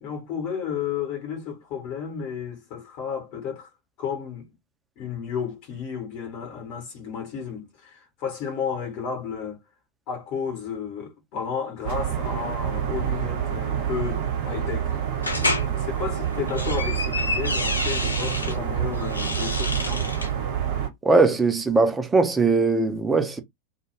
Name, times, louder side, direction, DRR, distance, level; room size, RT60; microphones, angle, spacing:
voice 1, 0.0-3.7 4.0-4.5 5.0-9.6 10.1-14.9 15.4-20.1, left 7 dB, 40° left, 1.1 m, -32 dB
sound 1, 11.8-20.9, right 9 dB, 50° right, 1.1 m, -27 dB
sound 2, 15.2-15.7 16.3-18.5 19.0-20.3, left 2 dB, 80° left, 0.5 m, -28 dB
voice 2, 21.0-23.4, right 3 dB, 15° right, 0.6 m, -20 dB
2.3 x 2.2 x 3.1 m
figure-of-eight pair, 90°, 0 cm